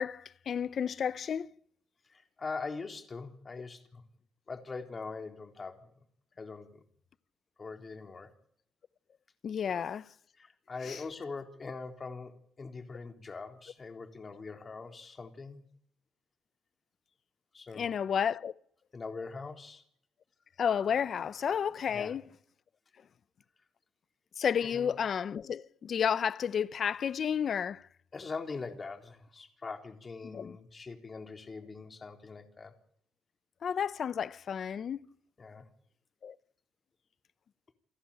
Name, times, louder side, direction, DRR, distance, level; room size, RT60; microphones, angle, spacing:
voice 1, 0.0-1.5 9.4-10.1 10.8-11.0 17.7-18.5 20.6-22.3 24.4-27.9 30.2-30.6 33.6-35.1 36.2-36.3, left 7 dB, 55° left, 0.8 m, -31 dB
voice 2, 2.1-4.0 4.5-5.9 6.4-6.8 7.6-8.3 9.7-9.9 10.4-12.3 12.6-15.6 17.5-18.0 18.9-19.8 21.9-22.2 24.6-24.9 28.1-32.7 35.4-35.7, left 4 dB, 35° left, 3.8 m, -42 dB
29.0 x 11.5 x 9.0 m
cardioid pair, 95°, 0 cm